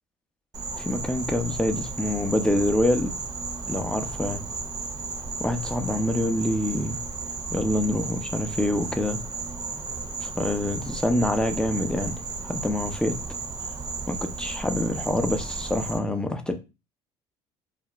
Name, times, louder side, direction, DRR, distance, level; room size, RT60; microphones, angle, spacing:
Insect, 0.5-16.0, right 4 dB, 30° right, 0.7 m, -34 dB
voice 1, 0.8-3.1 3.7-4.4 5.4-7.0 7.5-9.2 10.2-13.2 14.1-16.5, left 1 dB, 5° left, 6 dB, 0.5 m, -26 dB
2.4 x 2.1 x 3.0 m, 0.27 s
supercardioid pair, 85°, 13 cm